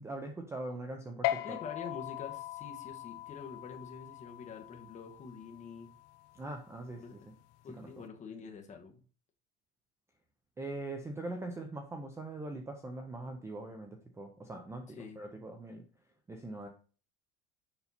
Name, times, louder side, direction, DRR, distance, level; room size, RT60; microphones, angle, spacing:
voice 1, 0.0-1.6 6.3-7.2 7.8-7.9 10.6-15.8 16.3-16.7, right 2 dB, 10° right, 4 dB, 0.5 m, -42 dB
sound 1, 1.2-8.0, left 15 dB, 50° left, 0.6 m, -40 dB
voice 2, 1.4-5.9 7.0-7.1 7.6-9.0 15.0-15.2, left 5 dB, 25° left, 2 dB, 1.1 m, -46 dB
7.0 x 5.5 x 4.2 m, 0.39 s
cardioid pair, 175°, 31 cm